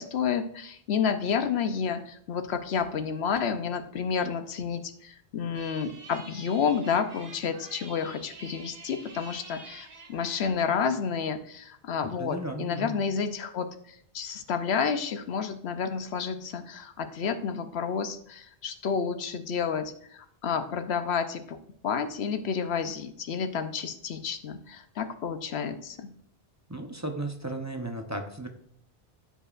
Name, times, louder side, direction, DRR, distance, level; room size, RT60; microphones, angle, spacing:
voice 1, 0.0-21.6 21.8-26.1, left 6 dB, 85° left, 9 dB, 1.0 m, -30 dB
sound 1, 5.5-10.5, right 4 dB, 70° right, 1.3 m, -48 dB
voice 2, 12.2-13.0 26.7-28.5, right 2 dB, 20° right, 3 dB, 0.8 m, -35 dB
14.0 x 5.4 x 2.5 m, 0.67 s
omnidirectional pair, 1.1 m